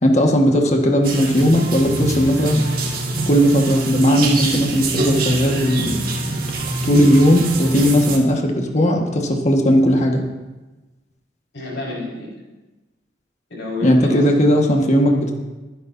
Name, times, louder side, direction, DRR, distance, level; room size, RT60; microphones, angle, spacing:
voice 1, 0.0-2.7 3.3-6.0 6.7-10.3 13.8-15.3, equal, 40° left, 1 dB, 1.6 m, -17 dB
sound 1, 1.0-8.2, right 2 dB, 55° right, 1.9 m, -24 dB
voice 2, 11.5-12.3 13.5-14.3 14.6-15.2, left 2 dB, 80° left, -4 dB, 5.1 m, -30 dB
22.5 x 10.5 x 2.7 m, 1.1 s
head